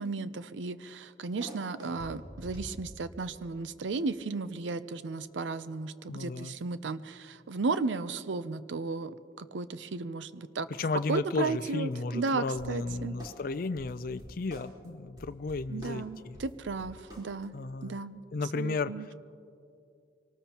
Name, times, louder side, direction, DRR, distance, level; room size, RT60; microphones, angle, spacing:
voice 1, 0.0-10.7 11.1-13.2 15.7-17.6 17.8-18.2 18.5-19.1, right 4 dB, 85° right, 14 dB, 0.6 m, -34 dB
sound 1, 1.4-3.3 11.3-11.4 11.6-11.7 11.9-12.0 12.2-12.3 12.6-14.9 15.2-17.4, equal, 25° right, 3.8 m, -46 dB
voice 2, 6.1-6.5 10.7-16.4 17.5-18.0 18.3-19.1, left 3 dB, 50° left, 14 dB, 0.4 m, -34 dB
25.0 x 19.0 x 2.9 m, 2.6 s
head